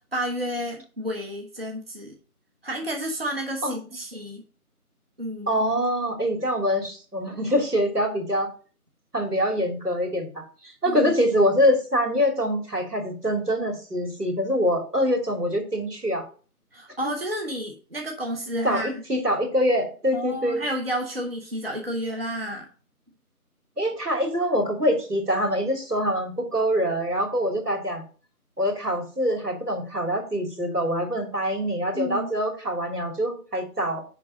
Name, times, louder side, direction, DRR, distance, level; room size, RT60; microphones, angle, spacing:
voice 1, 0.1-2.1 2.6-4.4 5.2-5.5 10.9-11.1 16.7-19.0 20.1-22.7 31.9-32.3, equal, 40° right, 2 dB, 1.1 m, -31 dB
voice 2, 5.5-8.5 9.1-16.2 18.6-20.6 23.8-28.0 28.6-34.0, equal, 85° right, 2 dB, 3.0 m, -24 dB
10.0 x 3.7 x 5.3 m, 0.40 s
figure-of-eight pair, 170°, 45 cm